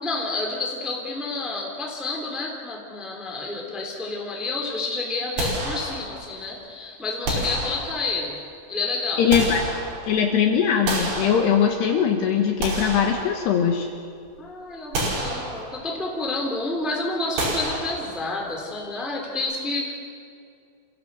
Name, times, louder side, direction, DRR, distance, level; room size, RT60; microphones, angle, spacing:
voice 1, 0.0-8.4 8.7-9.3 11.9-12.0 14.4-19.9, left 3 dB, ahead, 0 dB, 2.3 m, -29 dB
sound 1, 5.4-6.4 7.3-8.3 9.0-10.3 10.9-12.0 12.4-13.9 14.3-14.4 14.9-16.0 17.4-18.5, right 1 dB, 60° right, 7.2 m, -29 dB
voice 2, 9.2-9.6 10.1-13.9, left 7 dB, 70° left, 3 dB, 3.0 m, -21 dB
27.5 x 16.5 x 7.8 m, 2.3 s
omnidirectional pair, 5.7 m